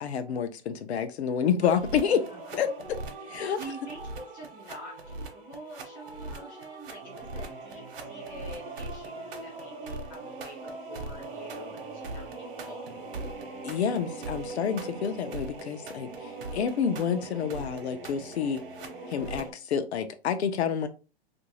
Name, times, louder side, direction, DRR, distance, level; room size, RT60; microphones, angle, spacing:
voice 1, 0.0-2.2 2.5-3.0 3.3-3.6 13.6-18.6 19.1-20.9, left 7 dB, 85° left, 0.6 m, -29 dB
sound 1, 1.6-19.5, right 2 dB, 60° right, 0.8 m, -40 dB
voice 2, 3.2-12.8, right 1 dB, 5° left, 0.4 m, -46 dB
2.9 x 2.6 x 2.9 m
hypercardioid pair, 170°, 32 cm